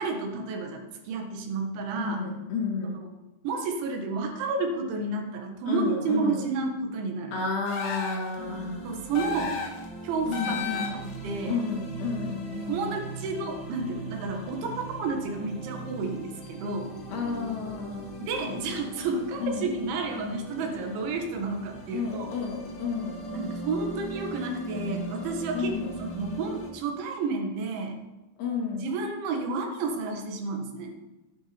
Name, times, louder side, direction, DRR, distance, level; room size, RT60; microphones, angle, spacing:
voice 1, 0.0-2.2 3.4-7.4 8.8-9.6 10.0-11.6 12.7-16.9 18.2-22.3 23.3-25.7 26.1-28.0 28.8-30.9, right 4 dB, 85° right, 3 dB, 3.9 m, -31 dB
voice 2, 2.0-3.0 5.6-6.4 7.3-9.1 10.3-11.0 11.4-13.0 17.1-18.3 19.4-19.7 21.9-23.2 25.5-25.9 28.4-28.9, left 4 dB, 60° left, -1 dB, 4.1 m, -31 dB
sound 1, 7.7-8.4 9.1-9.9 10.3-11.2, left 6 dB, 90° left, 4.3 m, -33 dB
sound 2, 8.4-26.7, right 1 dB, 45° left, 1.6 m, -40 dB
13.5 x 11.0 x 4.4 m, 1.0 s
omnidirectional pair, 5.2 m